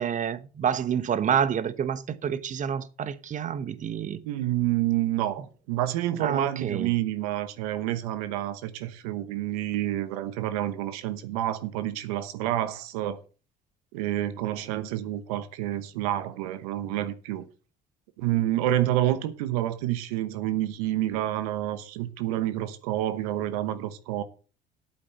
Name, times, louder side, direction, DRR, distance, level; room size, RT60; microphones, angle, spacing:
voice 1, 0.0-4.2 6.2-6.9, right 8 dB, 40° right, 1.1 m, -28 dB
voice 2, 4.2-13.2 13.9-17.5 18.2-24.2, right 13 dB, 85° right, 1.1 m, -28 dB
8.8 x 7.7 x 7.1 m
supercardioid pair, 75°, 19 cm